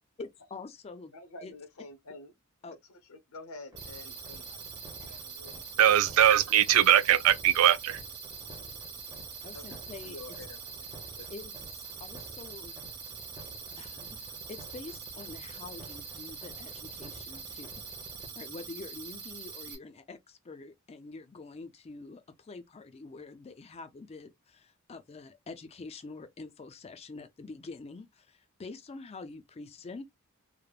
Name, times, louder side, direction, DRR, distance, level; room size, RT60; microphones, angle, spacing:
voice 1, 0.2-1.1 1.4-1.5 2.6-2.8 9.4-10.2 11.3-12.7 13.8-14.2 14.5-17.8 18.3-30.1, left 3 dB, 30° left, 0.4 m, -46 dB
voice 2, 1.1-2.3 2.7-4.6 5.0-5.7 6.0-6.2 9.5-11.3, left 2 dB, 75° left, 0.8 m, -49 dB
sound 1, 3.7-18.3, right 1 dB, 20° right, 0.8 m, -51 dB
sound 2, 3.8-19.8, right 6 dB, 50° right, 1.1 m, -44 dB
voice 3, 5.8-8.0, right 11 dB, 70° right, 0.3 m, -21 dB
3.2 x 2.1 x 2.3 m
head